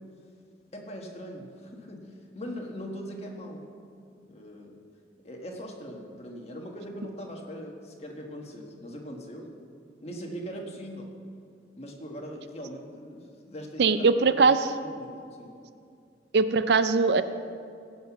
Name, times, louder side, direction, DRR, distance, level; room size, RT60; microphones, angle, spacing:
voice 1, 0.7-3.6 4.3-4.8 5.2-9.6 10.0-11.1 11.8-14.0 14.4-14.5 14.8-15.1 15.4-15.5, equal, 35° left, 1 dB, 1.4 m, -40 dB
voice 2, 13.8-14.7 16.3-17.2, right 4 dB, 65° right, 11 dB, 0.4 m, -21 dB
16.0 x 5.8 x 5.9 m, 2.4 s
head